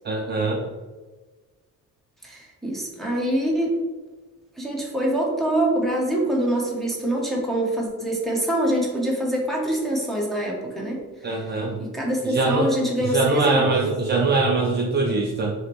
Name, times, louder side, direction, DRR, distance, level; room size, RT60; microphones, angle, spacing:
voice 1, 0.0-0.7 11.2-11.8 12.2-12.7 13.0-15.5, right 3 dB, 30° right, -1 dB, 0.4 m, -22 dB
voice 2, 2.2-3.8 4.6-11.0 11.8-13.7, right 1 dB, ahead, -3 dB, 0.7 m, -24 dB
4.9 x 3.0 x 2.9 m, 1.3 s
cardioid pair, 170°, 33 cm